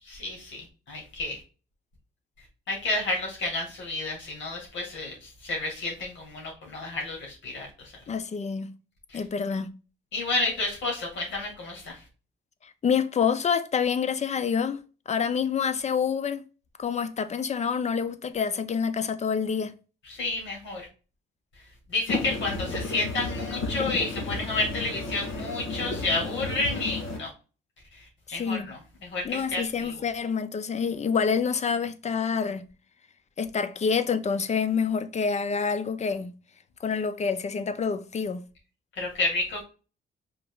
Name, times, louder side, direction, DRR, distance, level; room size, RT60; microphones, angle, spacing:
voice 1, 0.1-1.4 2.7-7.9 9.1-9.2 10.1-12.0 20.0-20.8 21.9-27.3 27.9-30.0 38.9-39.6, left 2 dB, 70° left, 2.3 m, -31 dB
voice 2, 8.1-8.7 9.1-9.7 12.8-16.4 16.8-19.7 28.3-28.7 29.2-32.6 33.4-36.3 36.8-38.4, left 6 dB, 35° left, 0.6 m, -27 dB
sound 1, 22.1-27.2, left 3 dB, 85° left, 1.9 m, -32 dB
4.7 x 3.0 x 3.8 m
cardioid pair, 90°, 20 cm